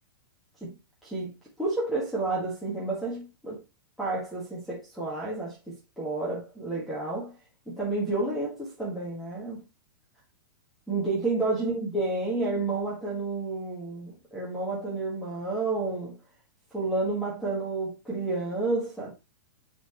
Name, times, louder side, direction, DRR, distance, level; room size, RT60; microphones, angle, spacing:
voice 1, 1.6-3.6 4.0-5.6 6.0-7.3 7.7-9.6 10.9-16.2 16.7-19.1, right 3 dB, ahead, 1.9 m, -30 dB
9.3 x 4.4 x 3.1 m
hypercardioid pair, 165°, 12 cm